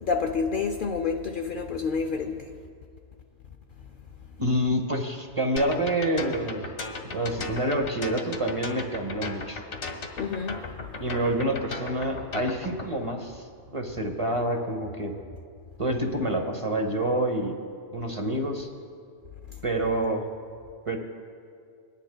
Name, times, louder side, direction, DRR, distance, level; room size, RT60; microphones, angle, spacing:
voice 1, 0.0-2.5 10.2-10.7, left 5 dB, 60° left, 0.6 m, -28 dB
voice 2, 4.4-6.7 7.1-9.6 11.0-13.4 13.7-15.1 15.8-17.5 17.9-18.7 19.6-20.2 20.9-21.0, right 1 dB, 30° right, 0.8 m, -27 dB
sound 1, 5.6-12.9, left 4 dB, 75° left, 1.3 m, -36 dB
25.5 x 10.0 x 2.2 m
omnidirectional pair, 1.2 m